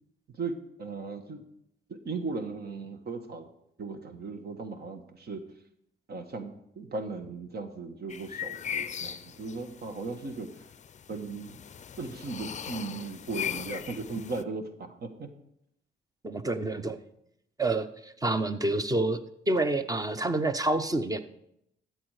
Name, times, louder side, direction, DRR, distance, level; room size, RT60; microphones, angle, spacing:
voice 1, 0.3-1.4 1.9-3.5 3.8-5.4 6.1-10.5 11.1-11.6 12.0-15.3, right 3 dB, 50° right, 7 dB, 1.4 m, -37 dB
sound 1, 8.1-14.4, left 8 dB, 35° left, 0.5 m, -39 dB
voice 2, 16.2-17.0 17.6-19.2 19.5-21.2, right 2 dB, 20° right, 11 dB, 0.9 m, -28 dB
13.0 x 8.0 x 4.9 m, 0.76 s
cardioid pair, 90°, 20 cm